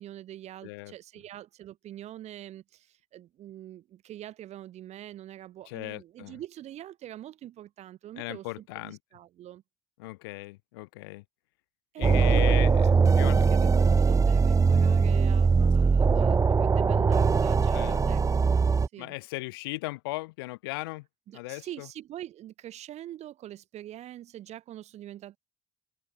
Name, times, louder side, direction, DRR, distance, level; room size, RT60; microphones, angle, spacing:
voice 1, 0.0-8.4 8.8-9.6 11.9-18.2 18.5-19.2 21.3-25.4, right 12 dB, 65° right, 3.5 m, -44 dB
voice 2, 0.6-0.9 5.7-6.4 8.2-9.0 10.0-11.2 12.0-13.5 17.7-18.0 19.0-21.1 21.3-21.9, left 22 dB, 85° left, 2.6 m, -37 dB
sound 1, 12.0-18.9, right 5 dB, 25° right, 0.5 m, -21 dB
open air
hypercardioid pair, 45°, 12 cm